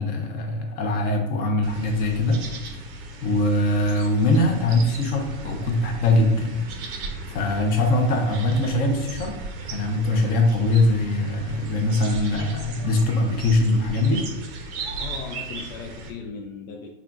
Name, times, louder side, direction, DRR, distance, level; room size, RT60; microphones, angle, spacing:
voice 1, 0.0-2.4 3.2-6.6 7.3-9.3 9.7-14.3, left 2 dB, 25° left, 2 dB, 0.4 m, -22 dB
sound 1, 1.6-16.1, right 3 dB, 35° right, 0.5 m, -37 dB
voice 2, 15.0-16.9, left 5 dB, 85° left, 2 dB, 0.6 m, -37 dB
3.6 x 2.2 x 3.5 m, 1.0 s
supercardioid pair, 135°, 41 cm